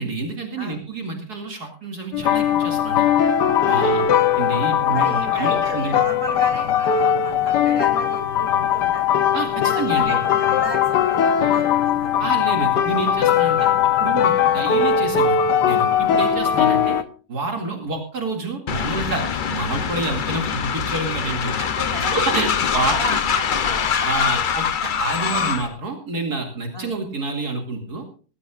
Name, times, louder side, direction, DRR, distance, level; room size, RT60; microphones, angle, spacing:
voice 1, 0.0-3.1 3.6-4.0 4.4-6.0 9.3-10.2 12.2-17.0 17.3-21.5 22.0-23.0 24.0-28.0, right 3 dB, 65° right, 2 dB, 2.8 m, -28 dB
sound 1, 2.1-17.0, left 8 dB, 80° left, 1.5 m, -19 dB
voice 2, 3.6-4.2 4.9-9.1 9.6-12.1 13.6-13.7 14.4-14.5 21.6-22.6 22.9-24.4 25.2-25.5 26.7-26.9, right 1 dB, 15° right, 0 dB, 5.2 m, -33 dB
Train, 18.7-25.7, left 7 dB, 55° left, 0.5 m, -23 dB
19.0 x 17.5 x 2.4 m, 0.39 s
omnidirectional pair, 1.8 m